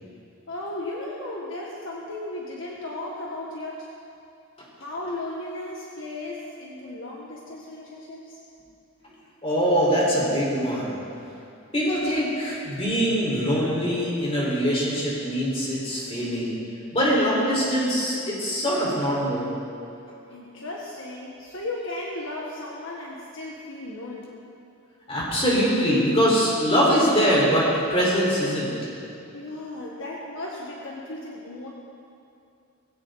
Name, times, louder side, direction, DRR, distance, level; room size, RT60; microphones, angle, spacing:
voice 1, 0.5-3.9 4.8-8.4 20.3-24.3 29.3-31.7, left 2 dB, 60° left, -3 dB, 1.5 m, -35 dB
voice 2, 9.4-11.0 11.7-16.6 16.9-19.5 25.1-28.7, equal, 25° left, -6 dB, 4.9 m, -23 dB
20.0 x 16.5 x 4.1 m, 2.6 s
head